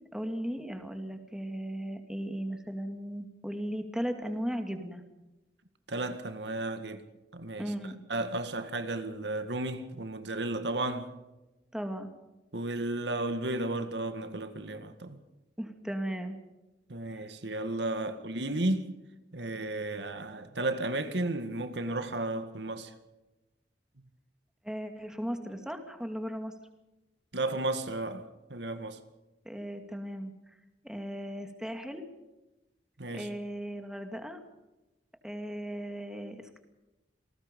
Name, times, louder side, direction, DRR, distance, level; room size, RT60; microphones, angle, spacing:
voice 1, 0.1-5.0 7.6-8.0 11.7-12.1 15.6-16.4 17.1-17.3 24.6-26.5 29.4-30.3 30.8-32.0 33.1-34.4 35.2-36.6, equal, 5° right, 2.4 m, -36 dB
voice 2, 5.9-7.0 7.3-7.7 8.1-11.1 12.5-15.2 16.9-19.0 19.3-22.9 27.3-29.0 33.0-33.3, right 2 dB, 80° right, 1.9 m, -33 dB
28.0 x 19.5 x 5.4 m
head